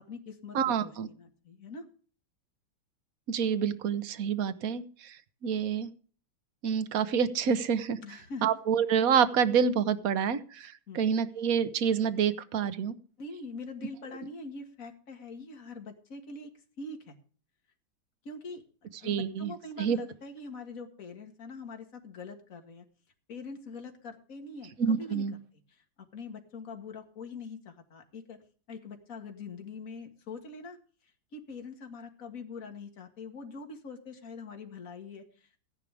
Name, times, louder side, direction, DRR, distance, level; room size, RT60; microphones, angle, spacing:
voice 1, 0.0-1.8 8.0-8.5 10.9-11.1 13.2-16.5 16.8-17.2 18.2-22.8 23.3-25.3 25.7-25.8 26.1-28.4 28.7-30.8 31.3-35.5, left 4 dB, 45° left, 5 dB, 2.2 m, -43 dB
voice 2, 0.5-1.1 3.3-5.2 5.4-5.9 6.6-8.0 8.4-12.9 19.0-19.5 19.8-20.0 24.8-25.3, right 7 dB, 55° right, 12 dB, 1.3 m, -27 dB
15.0 x 11.0 x 3.4 m, 0.41 s
omnidirectional pair, 2.1 m